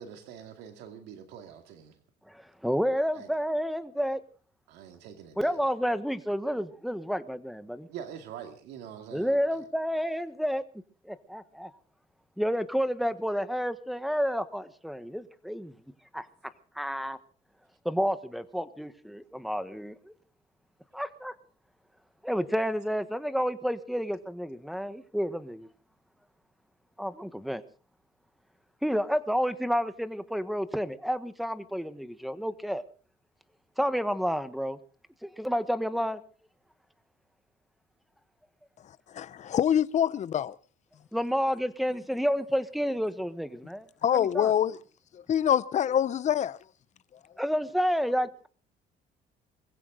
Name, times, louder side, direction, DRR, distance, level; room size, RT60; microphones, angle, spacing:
voice 1, 0.0-2.0 3.1-3.3 4.7-5.7 7.9-9.6, right 8 dB, 90° right, 2.4 m, -45 dB
voice 2, 2.3-4.2 5.4-7.9 9.1-10.6 11.0-11.7 12.4-15.7 16.1-16.3 16.7-17.2 17.8-20.1 20.9-21.3 22.2-25.7 27.0-27.6 28.8-32.8 33.8-34.8 35.2-36.2 41.1-43.9 44.1-44.5 47.4-48.5, equal, ahead, 1.3 m, -30 dB
voice 3, 38.8-40.6 44.0-44.8 45.1-46.6, left 9 dB, 45° left, 0.7 m, -26 dB
22.0 x 15.5 x 4.0 m
cardioid pair, 110°, 17 cm